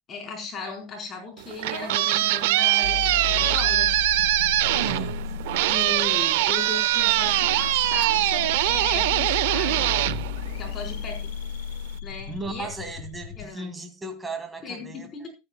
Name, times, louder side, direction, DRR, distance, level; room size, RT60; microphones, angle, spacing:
voice 1, 0.1-3.9 5.7-9.8 10.6-11.3 12.0-12.7 13.4-13.7 14.6-15.3, left 4 dB, 30° left, 4.5 m, -36 dB
sound 1, 1.4-11.0, right 16 dB, 75° right, 0.6 m, -23 dB
sound 2, 2.8-13.5, left 11 dB, 85° left, 1.1 m, -34 dB
voice 2, 4.8-5.2 12.3-15.3, right 2 dB, 10° right, 2.5 m, -36 dB
14.5 x 12.0 x 2.3 m
supercardioid pair, 135°, 0 cm